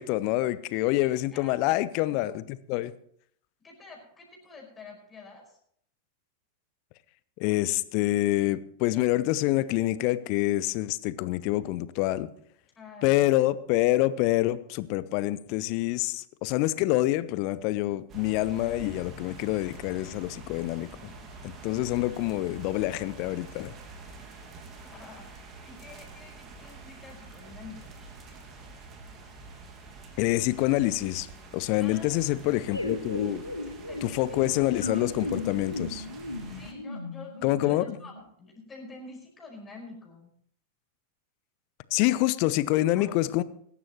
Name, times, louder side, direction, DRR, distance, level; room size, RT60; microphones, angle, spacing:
voice 1, 0.0-2.9 7.4-12.3 13.0-21.1 21.4-23.7 30.2-31.3 31.5-33.4 34.0-36.1 37.4-37.9 41.9-43.4, left 16 dB, 45° left, 17 dB, 0.6 m, -26 dB
voice 2, 1.0-1.9 3.6-5.6 12.8-13.4 24.7-27.9 31.8-33.0 33.9-35.2 36.5-40.3 43.0-43.3, left 3 dB, 20° left, -1 dB, 5.2 m, -48 dB
sound 1, 18.1-36.7, right 3 dB, 30° right, 2.1 m, -46 dB
sound 2, 32.7-38.2, left 2 dB, 85° left, 1.7 m, -36 dB
21.5 x 11.0 x 3.1 m, 0.65 s
figure-of-eight pair, 90°, 0 cm